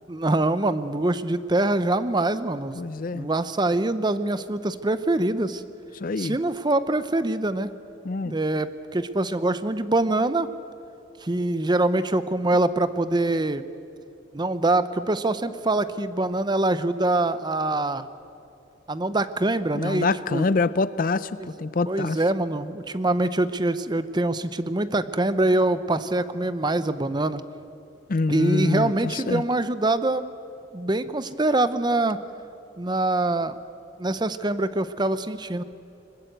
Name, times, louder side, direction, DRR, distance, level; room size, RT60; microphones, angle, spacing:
voice 1, 0.1-2.8 3.1-5.6 6.2-7.7 8.2-10.5 11.2-13.6 14.3-18.1 18.9-20.4 21.4-21.5 21.9-27.4 28.3-30.3 30.7-32.2 32.8-33.5 34.0-35.6, right 2 dB, 25° right, 13 dB, 0.7 m, -24 dB
voice 2, 2.7-3.3 6.0-6.4 8.0-8.4 19.7-21.3 21.6-22.2 28.1-29.4, left 3 dB, 50° left, 16 dB, 0.5 m, -25 dB
21.5 x 21.0 x 8.1 m, 2.6 s
head